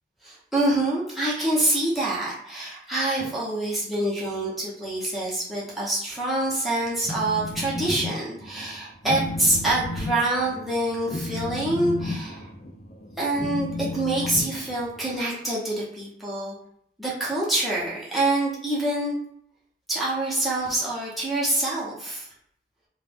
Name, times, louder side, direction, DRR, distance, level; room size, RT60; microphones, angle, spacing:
voice 1, 0.2-12.5 13.2-16.5 17.0-19.2 19.9-22.3, right 1 dB, ahead, -8 dB, 0.7 m, -26 dB
Telephone, 6.9-8.1 8.4-8.7 9.0-15.2, left 2 dB, 35° left, 0.4 m, -33 dB
2.4 x 2.2 x 3.3 m, 0.70 s
head